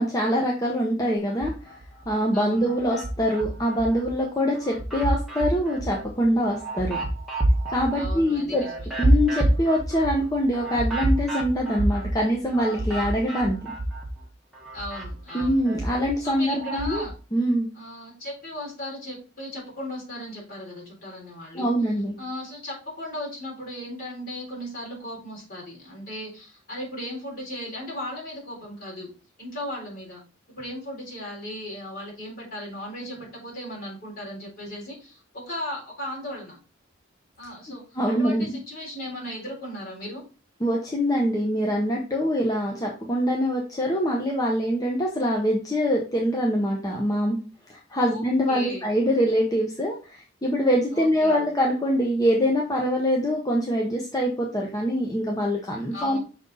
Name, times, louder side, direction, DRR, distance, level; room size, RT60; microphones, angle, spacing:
voice 1, 0.0-1.5 2.1-7.0 7.7-8.6 9.0-13.7 15.3-17.0 17.3-17.7 21.5-22.1 37.9-38.5 40.6-47.4 47.7-56.2, equal, 20° left, -1 dB, 0.9 m, -24 dB
sound 1, 1.3-2.1 2.5-4.1 4.5-14.2 14.5-17.1, right 1 dB, ahead, 1.6 m, -28 dB
voice 2, 2.3-2.7 7.9-8.9 14.7-15.6 16.2-17.1 17.7-21.7 22.2-29.1 29.4-30.2 30.5-36.6 37.4-40.2 47.9-48.8 50.9-51.4 55.9-56.2, left 1 dB, 50° left, -3 dB, 3.6 m, -36 dB
6.2 x 3.9 x 3.9 m, 0.35 s
head